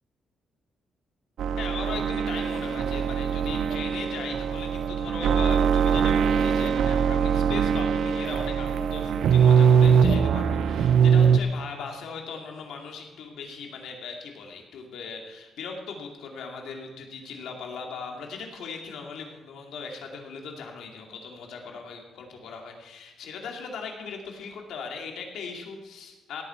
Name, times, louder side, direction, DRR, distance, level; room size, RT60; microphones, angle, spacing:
sound 1, 1.4-11.4, right 7 dB, 70° right, 0.6 m, -22 dB
voice 1, 1.6-26.4, left 5 dB, 85° left, 2 dB, 2.5 m, -38 dB
17.0 x 8.8 x 4.5 m, 1.2 s
cardioid pair, 145°, 0 cm